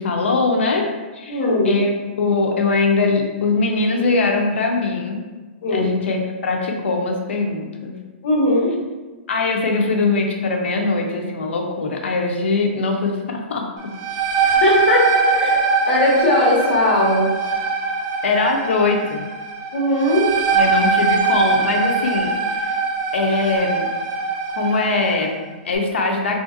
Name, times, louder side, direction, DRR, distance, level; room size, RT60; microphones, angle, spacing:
voice 1, 0.0-1.4 1.6-1.9 2.2-5.2 5.7-6.2 6.4-7.9 9.3-13.9 18.2-19.3 20.5-22.7 23.1-23.9 24.6-26.4, left 3 dB, 90° left, 2 dB, 0.5 m, -21 dB
voice 2, 1.3-1.8 5.6-5.9 8.2-8.7 14.6-17.3 19.7-20.3, left 1 dB, 65° left, -3 dB, 1.0 m, -18 dB
sound 1, 13.8-25.3, right 4 dB, 25° right, 0.3 m, -21 dB
3.1 x 2.5 x 2.5 m, 1.2 s
hypercardioid pair, 150°, 6 cm